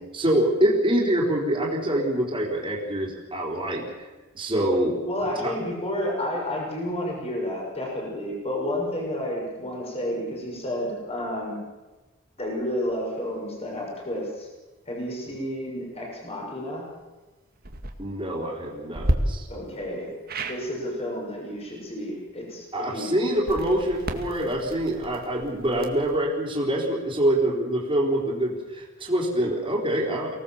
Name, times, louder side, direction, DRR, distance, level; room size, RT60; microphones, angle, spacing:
voice 1, 0.1-4.1 4.3-5.0 5.4-5.6 18.0-19.5 22.7-30.4, right 1 dB, 25° right, -3 dB, 4.1 m, -25 dB
voice 2, 5.0-11.6 12.4-14.5 14.9-16.9 19.5-20.1 20.5-23.2, left 1 dB, 30° left, -1 dB, 6.3 m, -31 dB
sound 1, 17.6-17.9 18.9-19.2 20.3-20.6 23.3-26.2, right 1 dB, 45° right, 2.1 m, -31 dB
24.5 x 18.5 x 7.3 m, 1.2 s
head